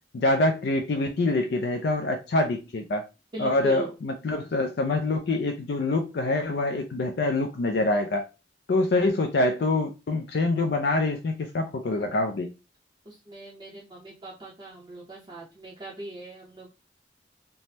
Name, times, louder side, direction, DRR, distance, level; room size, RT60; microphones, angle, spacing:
voice 1, 0.1-3.1 3.4-8.2 8.7-12.5, left 2 dB, 55° left, 0.4 m, -25 dB
voice 2, 3.3-3.9 13.1-16.7, right 1 dB, 25° right, 0.6 m, -39 dB
3.3 x 2.1 x 2.7 m
head